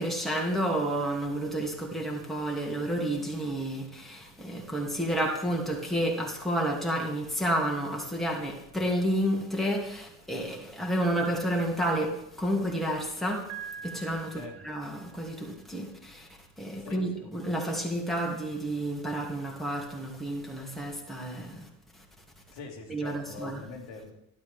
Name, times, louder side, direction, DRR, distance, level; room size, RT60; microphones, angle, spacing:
voice 1, 0.0-12.1 12.4-13.4 13.8-16.3 16.6-21.6 22.9-23.6, right 1 dB, ahead, -2 dB, 2.5 m, -30 dB
voice 2, 4.4-4.7 14.4-14.6 16.8-17.3 22.5-24.1, left 3 dB, 60° left, 0 dB, 2.3 m, -43 dB
Piano, 13.5-15.4, right 7 dB, 65° right, 1.0 m, -44 dB
12.5 x 9.5 x 3.6 m, 0.80 s
hypercardioid pair, 60°, 48 cm